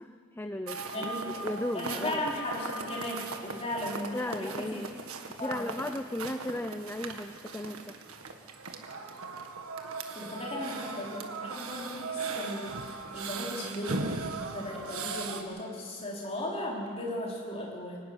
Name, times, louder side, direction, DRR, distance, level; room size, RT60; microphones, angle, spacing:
voice 1, 0.0-1.1 1.4-2.2 4.1-4.9 5.3-8.0, left 1 dB, 10° left, 8 dB, 0.5 m, -36 dB
sound 1, 0.7-15.4, right 3 dB, 80° right, 1.7 m, -38 dB
voice 2, 0.9-1.4 1.7-4.7 5.4-5.7 10.1-14.1 14.4-18.0, left 1 dB, 30° left, -4 dB, 4.7 m, -36 dB
24.0 x 12.0 x 9.8 m, 2.5 s
head